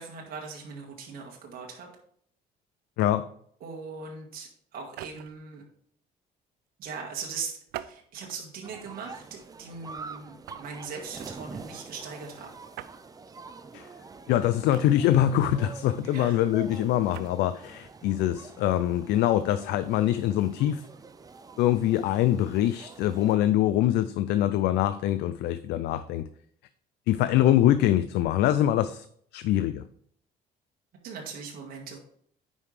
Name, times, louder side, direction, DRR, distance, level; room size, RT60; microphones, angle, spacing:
voice 1, 0.0-1.9 3.6-5.6 6.8-12.6 16.1-16.4 31.0-32.0, right 5 dB, 60° right, -1 dB, 1.7 m, -40 dB
voice 2, 3.0-3.3 13.7-13.9 14.3-20.8 21.6-26.3 27.1-29.0 29.3-29.8, left 12 dB, 80° left, 13 dB, 0.4 m, -24 dB
sound 1, 4.8-5.5 7.7-8.5 9.1-9.3 10.5-10.8 12.7-13.0 14.7-15.2 16.9-17.3, right 13 dB, 85° right, 0.5 m, -42 dB
sound 2, 8.6-23.4, right 4 dB, 20° right, 0.5 m, -46 dB
9.4 x 5.4 x 3.3 m, 0.64 s
cardioid pair, 110°, 17 cm